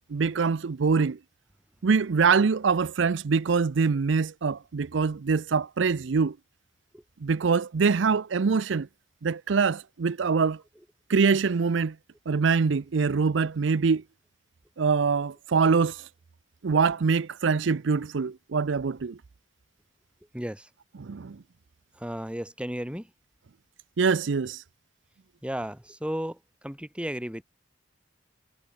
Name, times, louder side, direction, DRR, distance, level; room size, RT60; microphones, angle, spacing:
voice 1, 0.1-1.2 1.8-6.4 7.2-8.9 9.2-10.6 11.1-11.9 12.3-14.0 14.8-16.1 16.6-19.2 21.0-21.4 24.0-24.6, right 5 dB, 75° right, 0.5 m, -24 dB
voice 2, 20.3-20.7 21.9-23.1 25.4-27.4, equal, 5° right, 2.7 m, -34 dB
head